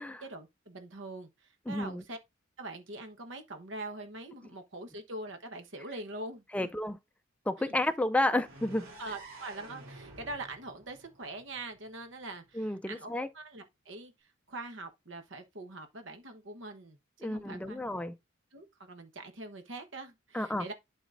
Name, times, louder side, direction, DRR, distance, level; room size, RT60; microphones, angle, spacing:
voice 1, 0.2-2.2 2.6-6.7 7.7-7.8 9.0-17.8 18.5-20.7, right 2 dB, 65° right, 1.2 m, -43 dB
voice 2, 1.7-2.0 6.5-7.0 7.5-8.9 12.5-13.3 17.2-18.1 20.3-20.7, left 1 dB, 5° left, 0.4 m, -31 dB
sound 1, 8.4-12.3, right 1 dB, 90° right, 2.8 m, -51 dB
11.5 x 4.1 x 2.6 m
head